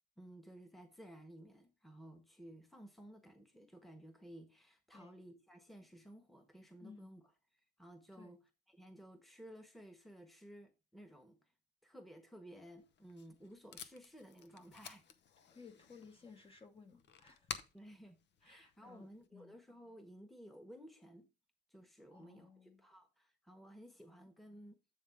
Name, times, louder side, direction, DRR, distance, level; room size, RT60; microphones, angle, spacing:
voice 1, 0.2-7.2 7.8-8.4 8.7-11.4 11.8-15.0 17.7-21.2 21.7-24.8, right 1 dB, ahead, 1.3 m, -56 dB
voice 2, 6.8-7.1 8.1-8.4 15.5-17.5 18.4-19.6 22.1-22.8, left 5 dB, 25° left, 1.4 m, -58 dB
Packing tape duct tape, 12.8-19.3, left 8 dB, 60° left, 0.8 m, -53 dB
8.7 x 3.6 x 4.8 m
cardioid pair, 90°, 20 cm